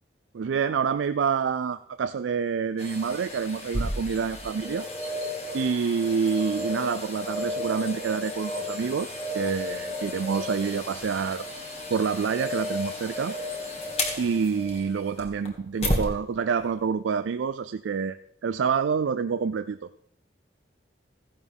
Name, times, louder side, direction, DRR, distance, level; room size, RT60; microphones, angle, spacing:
voice 1, 0.3-4.9 5.5-11.4 11.9-13.3 14.2-18.2 18.4-19.8, right 6 dB, 85° right, 11 dB, 0.4 m, -27 dB
sound 1, 2.8-16.1 16.6-16.7, left 1 dB, 35° left, 2.1 m, -33 dB
15.0 x 11.0 x 3.6 m, 0.71 s
head